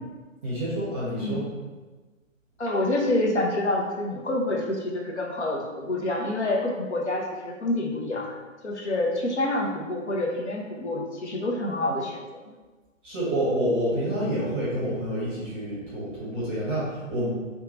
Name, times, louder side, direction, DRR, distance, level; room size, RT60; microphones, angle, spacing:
voice 1, 0.4-1.5 13.0-17.3, right 1 dB, 10° right, -9 dB, 0.8 m, -28 dB
voice 2, 2.6-8.3 8.6-12.2 12.5-12.6, left 1 dB, 55° left, 0 dB, 0.9 m, -27 dB
4.7 x 2.4 x 3.8 m, 1.3 s
figure-of-eight pair, 140°, 40 cm